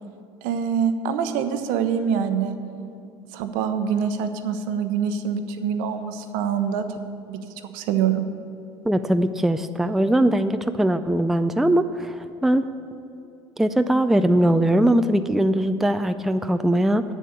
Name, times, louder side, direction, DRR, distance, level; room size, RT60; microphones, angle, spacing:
voice 1, 0.4-2.6 3.3-6.8 7.3-7.4 7.7-8.3, right 7 dB, 65° right, 9 dB, 0.8 m, -25 dB
voice 2, 8.9-12.6 13.6-17.0, right 1 dB, ahead, 9 dB, 0.4 m, -21 dB
8.3 x 7.4 x 8.2 m, 2.6 s
hypercardioid pair, 75°, 15 cm